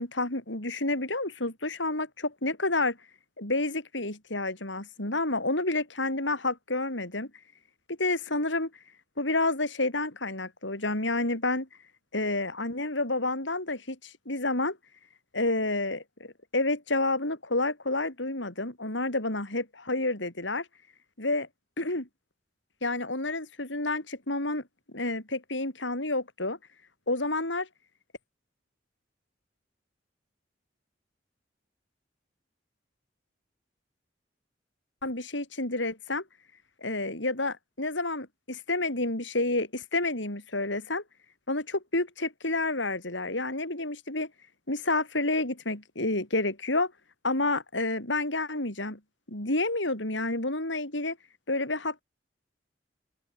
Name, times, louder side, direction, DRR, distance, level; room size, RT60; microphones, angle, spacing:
voice 1, 0.0-3.0 3.4-7.3 7.9-8.7 9.2-11.7 12.1-14.8 15.3-20.7 21.2-21.5 21.8-22.1 22.8-24.6 24.9-26.6 27.1-27.7 35.0-36.2 36.8-41.0 41.5-44.3 44.7-46.9 47.2-49.0 49.3-51.2 51.5-52.0, left 2 dB, 85° left, 7.1 m, -29 dB
open air
head